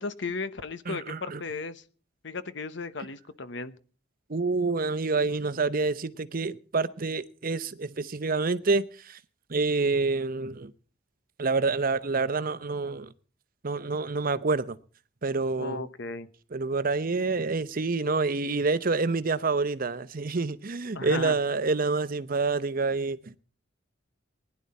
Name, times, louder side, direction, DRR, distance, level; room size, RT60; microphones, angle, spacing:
voice 1, 0.0-1.8 2.2-3.7 15.5-16.3 20.9-21.4, left 3 dB, 65° left, 1.0 m, -35 dB
voice 2, 0.9-1.4 4.3-9.2 9.5-10.7 11.4-13.1 13.6-14.8 15.2-15.9 16.5-23.4, right 3 dB, 50° right, 0.8 m, -27 dB
20.0 x 11.0 x 4.2 m
head